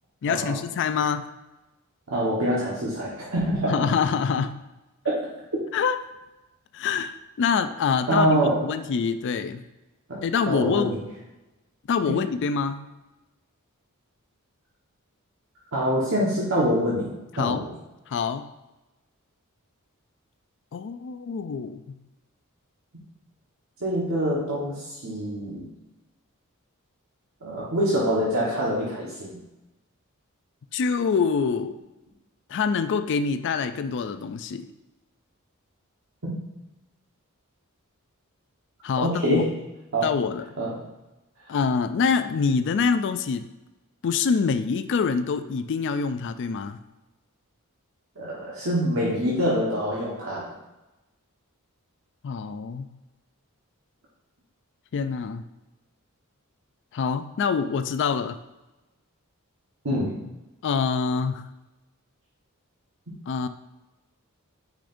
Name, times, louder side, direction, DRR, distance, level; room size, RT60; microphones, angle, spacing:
voice 1, 0.2-1.3 3.7-4.6 5.7-6.0 6.7-9.6 10.2-11.0 11.9-12.9 17.3-17.6 18.1-18.5 20.7-21.9 30.7-31.8 32.5-34.7 38.8-39.5 40.0-40.4 41.5-43.5 44.0-46.8 52.2-52.9 54.9-55.4 56.9-58.4 60.6-61.4 63.3-63.5, left 5 dB, 55° left, 11 dB, 0.4 m, -25 dB
voice 2, 2.1-3.8 5.0-5.2 8.1-8.7 10.1-11.0 12.0-12.2 15.7-17.1 17.4-17.7 23.8-25.7 27.4-29.4 36.2-36.3 39.0-39.5 39.9-40.1 40.6-40.8 48.2-50.5 59.8-60.1, equal, 65° right, -5 dB, 1.3 m, -25 dB
9.1 x 5.0 x 2.6 m, 1.0 s
head